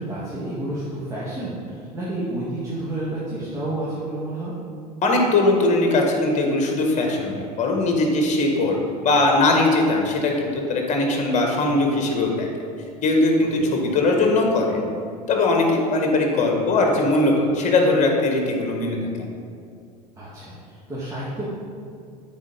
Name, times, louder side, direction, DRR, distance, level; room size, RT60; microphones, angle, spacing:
voice 1, 0.0-4.5 13.6-13.7 20.2-21.5, right 1 dB, 15° right, -9 dB, 1.9 m, -30 dB
voice 2, 5.0-8.8 9.0-12.5 13.0-14.9 15.3-19.3, left 2 dB, 35° left, 1 dB, 1.7 m, -20 dB
8.3 x 4.4 x 5.4 m, 2.3 s
figure-of-eight pair, 75°, 21 cm